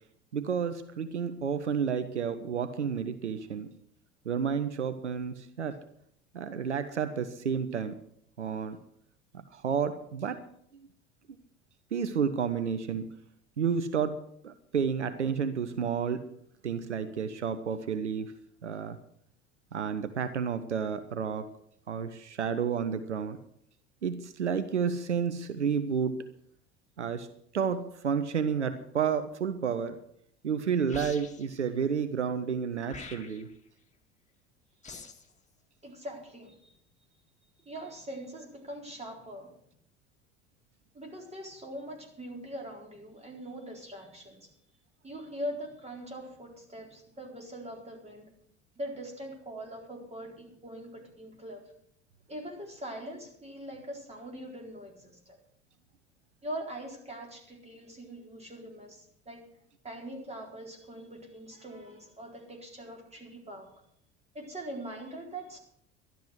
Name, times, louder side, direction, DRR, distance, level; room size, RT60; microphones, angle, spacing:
voice 1, 0.3-3.7 4.2-5.8 6.3-8.0 8.4-8.8 9.5-10.4 11.9-13.1 13.6-16.2 16.6-18.3 18.6-19.0 19.7-21.5 21.9-23.4 24.0-26.2 27.0-27.3 27.5-30.0 30.4-33.5, right 7 dB, 85° right, 10 dB, 0.9 m, -31 dB
sound 1, 30.9-31.6 32.9-33.6 34.8-35.3, left 5 dB, 20° left, 2.1 m, -45 dB
voice 2, 35.8-36.7 37.6-39.6 40.9-44.5 45.0-48.3 48.8-51.6 52.3-55.4 56.4-59.4 59.8-63.7 64.3-65.6, right 1 dB, 20° right, 1 dB, 4.2 m, -42 dB
12.5 x 11.5 x 6.5 m, 0.68 s
figure-of-eight pair, 70°, 34 cm